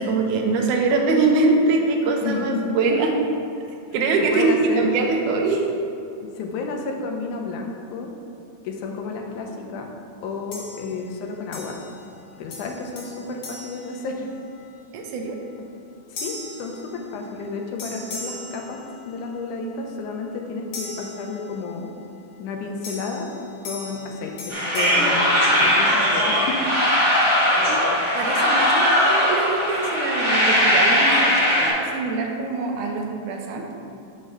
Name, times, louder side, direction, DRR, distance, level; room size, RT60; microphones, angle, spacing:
voice 1, 0.0-3.2 3.9-5.9 14.9-15.4 28.1-33.7, right 3 dB, 90° right, 2 dB, 2.2 m, -23 dB
voice 2, 2.2-2.6 4.2-4.9 6.4-8.1 8.6-9.9 10.2-11.8 12.4-14.3 16.1-21.9 22.4-23.3 23.6-26.6, left 4 dB, 90° left, 2 dB, 2.1 m, -31 dB
sound 1, 10.5-11.2 11.5-12.2 12.5-14.7 15.2-15.5 16.2-17.5 17.8-19.4 20.7-21.9 22.8-26.1, left 2 dB, 55° left, 1.6 m, -39 dB
sound 2, 24.5-31.7, equal, 50° right, 0.5 m, -19 dB
6.2 x 4.0 x 6.3 m, 2.6 s
omnidirectional pair, 3.5 m